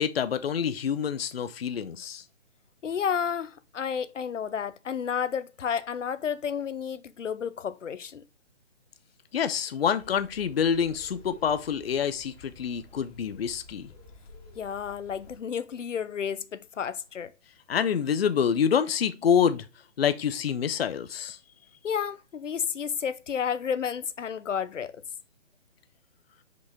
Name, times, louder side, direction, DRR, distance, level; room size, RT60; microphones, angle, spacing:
voice 1, 0.0-2.2 9.3-13.9 17.7-19.7 20.0-21.4, left 7 dB, 55° left, 0.6 m, -27 dB
voice 2, 2.8-8.2 14.6-17.3 21.8-25.0, left 7 dB, 90° left, 0.8 m, -31 dB
sound 1, 10.0-15.4, left 2 dB, 30° left, 2.2 m, -52 dB
6.2 x 5.2 x 3.4 m
hypercardioid pair, 165°, 36 cm